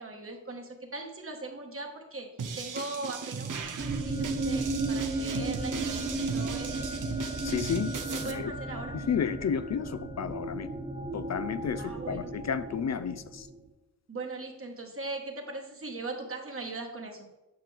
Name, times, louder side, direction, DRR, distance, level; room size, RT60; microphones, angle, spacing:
voice 1, 0.0-2.3 2.6-6.9 8.2-8.9 11.8-12.3 14.1-17.3, right 2 dB, 45° right, 2 dB, 1.5 m, -40 dB
sound 1, 2.4-8.3, right 5 dB, 80° right, 0.8 m, -37 dB
sound 2, 3.8-13.6, right 2 dB, 25° right, 1.4 m, -34 dB
voice 2, 7.4-7.9 8.2-8.5 8.9-10.7 11.1-13.5, left 7 dB, 60° left, 13 dB, 0.4 m, -32 dB
8.7 x 6.0 x 3.4 m, 0.97 s
wide cardioid pair, 95°, 31 cm